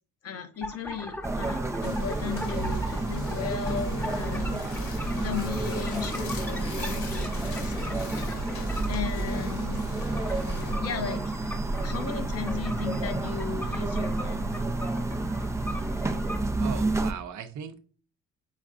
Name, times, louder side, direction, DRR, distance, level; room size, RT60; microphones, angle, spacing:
voice 1, 0.2-8.5 8.9-9.9 10.8-11.6 11.8-14.6, left 7 dB, 50° left, 7 dB, 0.9 m, -36 dB
sound 1, 0.6-16.4, equal, 5° left, 0.8 m, -41 dB
sound 2, 1.2-17.1, right 2 dB, 10° right, 0.4 m, -30 dB
sound 3, 1.8-10.7, left 1 dB, 70° left, 1.9 m, -37 dB
voice 2, 16.6-17.8, right 7 dB, 70° right, 9 dB, 0.7 m, -38 dB
5.7 x 3.6 x 2.4 m, 0.40 s
cardioid pair, 90°, 30 cm